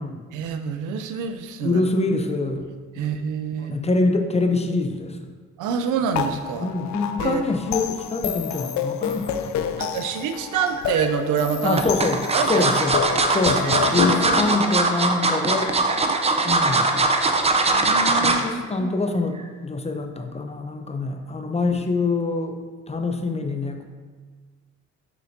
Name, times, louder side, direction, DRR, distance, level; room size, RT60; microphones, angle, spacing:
voice 1, 0.3-1.8 3.0-3.9 5.6-6.7 7.2-7.4 9.8-11.8 12.3-12.7 13.4-14.5 15.6-15.7 16.0-16.2 16.5-16.6 17.7-18.9, right 7 dB, 90° right, 7 dB, 0.5 m, -27 dB
voice 2, 1.6-2.6 3.0-3.1 3.6-5.2 6.6-9.9 11.6-12.2 12.5-13.0 13.3-15.7 16.4-16.9 18.2-22.6 22.9-23.8, left 3 dB, 20° left, 5 dB, 0.6 m, -25 dB
sound 1, 6.1-14.5, left 8 dB, 70° left, 0.5 m, -29 dB
sound 2, 10.5-11.1 11.8-18.5 18.9-19.1 19.4-19.5, right 3 dB, 20° right, 0.6 m, -21 dB
6.1 x 5.7 x 2.7 m, 1.5 s
cardioid pair, 90°, 30 cm